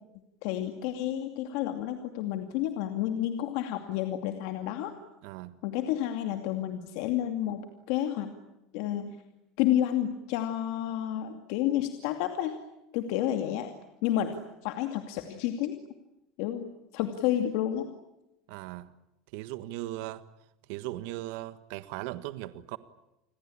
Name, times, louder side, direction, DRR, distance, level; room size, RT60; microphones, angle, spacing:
voice 1, 0.4-4.9 5.6-8.3 8.7-9.2 9.6-12.5 12.9-13.7 14.0-14.4 14.6-15.8 16.4-16.7 16.9-17.9, left 12 dB, 70° left, 6 dB, 2.5 m, -30 dB
voice 2, 5.2-5.6 18.5-18.9 19.3-20.2 20.7-22.8, right 16 dB, 70° right, 12 dB, 1.5 m, -38 dB
30.0 x 21.5 x 8.8 m, 0.91 s
supercardioid pair, 145°, 0 cm